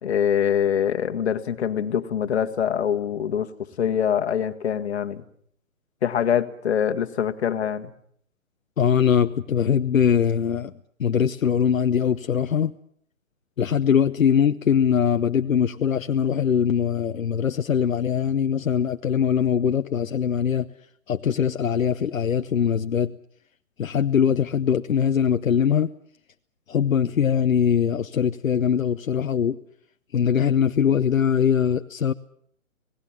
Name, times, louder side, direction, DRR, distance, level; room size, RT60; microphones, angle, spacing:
voice 1, 0.0-3.5 3.8-5.2 6.0-7.9, left 8 dB, 50° left, 8 dB, 1.7 m, -24 dB
voice 2, 8.8-10.7 11.0-12.7 13.6-20.7 21.1-23.1 23.8-25.9 26.7-29.6 30.1-32.1, left 8 dB, 75° left, 8 dB, 0.9 m, -22 dB
27.0 x 18.5 x 7.5 m, 0.66 s
hypercardioid pair, 145°, 41 cm